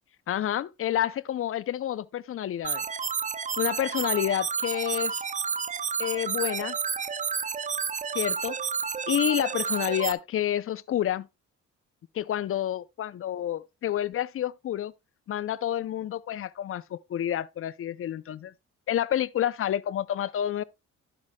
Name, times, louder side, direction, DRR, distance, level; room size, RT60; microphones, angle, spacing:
voice 1, 0.3-2.9 3.6-5.2 6.0-6.8 8.1-8.6 9.1-11.3 12.1-14.9 15.3-18.5 18.9-20.6, left 11 dB, 45° left, 0.5 m, -29 dB
sound 1, 2.6-10.1, right 6 dB, 25° right, 0.5 m, -30 dB
11.5 x 7.5 x 2.2 m
cardioid pair, 90°, 30 cm